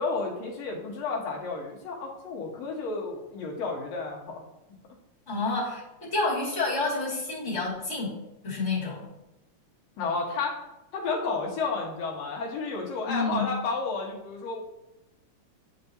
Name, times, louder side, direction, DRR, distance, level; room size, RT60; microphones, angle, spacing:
voice 1, 0.0-4.4 10.0-10.6 10.9-14.6, left 4 dB, 65° left, -1 dB, 2.3 m, -31 dB
voice 2, 5.3-8.1 8.4-9.1 13.1-13.5, left 3 dB, 25° left, -6 dB, 2.2 m, -29 dB
9.5 x 4.6 x 2.7 m, 0.94 s
omnidirectional pair, 3.4 m